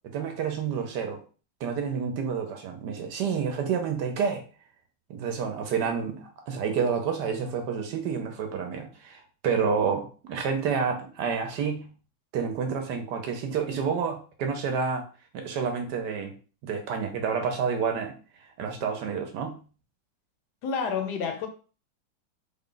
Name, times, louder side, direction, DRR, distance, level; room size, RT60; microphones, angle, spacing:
voice 1, 0.1-1.2 1.6-4.4 5.1-11.9 12.3-15.0 15.3-16.3 16.6-18.1 18.6-19.6, right 6 dB, 70° right, 1.1 m, -29 dB
voice 2, 20.6-21.5, left 6 dB, 70° left, 1.1 m, -29 dB
3.7 x 2.2 x 3.8 m
omnidirectional pair, 2.1 m